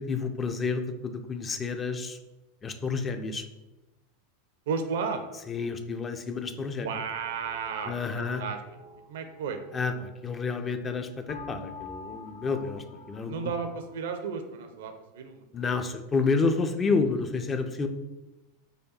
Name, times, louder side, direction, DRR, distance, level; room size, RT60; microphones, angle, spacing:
voice 1, 0.0-2.2 2.6-3.4 5.5-6.9 7.9-8.4 9.7-13.5 15.5-17.9, left 4 dB, 25° left, 7 dB, 0.4 m, -30 dB
voice 2, 4.7-5.2 6.8-8.6 9.1-9.6 13.3-15.4, right 5 dB, 60° right, 7 dB, 0.5 m, -33 dB
sound 1, 7.1-10.9 11.2-13.9, left 4 dB, 80° left, 0.6 m, -47 dB
4.9 x 2.2 x 4.1 m, 1.0 s
figure-of-eight pair, 85°, 0 cm